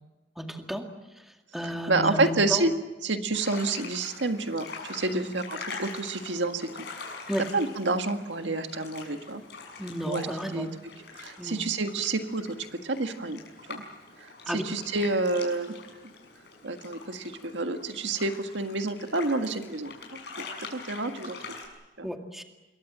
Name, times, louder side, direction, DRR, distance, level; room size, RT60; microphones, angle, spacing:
voice 1, 0.4-0.8 1.5-2.6 5.1-5.3 7.3-7.4 9.8-10.7 11.4-11.6 14.5-14.6 22.0-22.4, equal, ahead, 3 dB, 2.1 m, -32 dB
voice 2, 1.9-2.7 3.0-6.9 7.5-9.4 10.1-10.3 10.5-10.7 11.1-12.6 12.8-13.4 13.7-13.8 14.2-16.1 16.6-19.9 20.7-21.4 22.0-22.1, right 2 dB, 85° right, 6 dB, 1.8 m, -29 dB
sound 1, 3.3-21.7, left 4 dB, 65° left, 6.3 m, -44 dB
27.0 x 22.0 x 7.5 m, 1.1 s
head